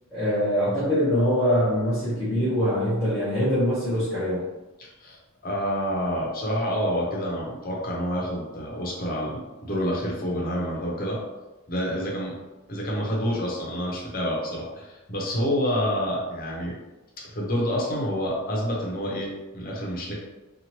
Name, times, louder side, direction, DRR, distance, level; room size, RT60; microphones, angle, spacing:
voice 1, 0.1-4.4, equal, ahead, -12 dB, 1.1 m, -23 dB
voice 2, 4.8-5.2 5.4-11.2 11.7-12.3 12.7-16.8 17.2-20.1, equal, 40° left, -3 dB, 0.7 m, -28 dB
2.9 x 2.4 x 2.9 m, 1.1 s
head